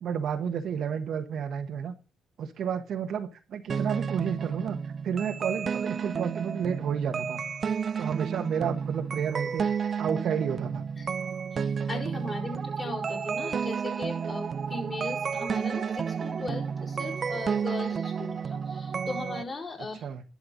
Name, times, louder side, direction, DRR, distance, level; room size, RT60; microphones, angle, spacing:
voice 1, 0.0-1.9 2.4-4.8 5.0-7.4 8.0-9.7 10.0-10.8 19.8-20.2, right 7 dB, 70° right, 6 dB, 1.2 m, -31 dB
sound 1, 3.7-19.4, right 6 dB, 45° right, 0.5 m, -31 dB
voice 2, 11.5-20.1, left 2 dB, 35° left, -3 dB, 4.5 m, -38 dB
11.5 x 7.9 x 3.9 m, 0.34 s
cardioid pair, 90°, 0 cm